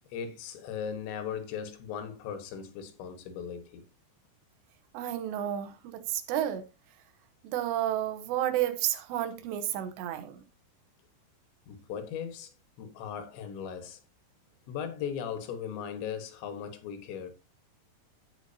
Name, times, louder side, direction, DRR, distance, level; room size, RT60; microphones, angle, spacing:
voice 1, 0.1-3.9 11.7-12.5 12.8-14.0 14.7-17.3, left 7 dB, 90° left, 3.7 m, -38 dB
voice 2, 4.9-6.7 7.4-10.4, right 11 dB, 80° right, 3.2 m, -31 dB
15.0 x 6.0 x 2.8 m
omnidirectional pair, 5.0 m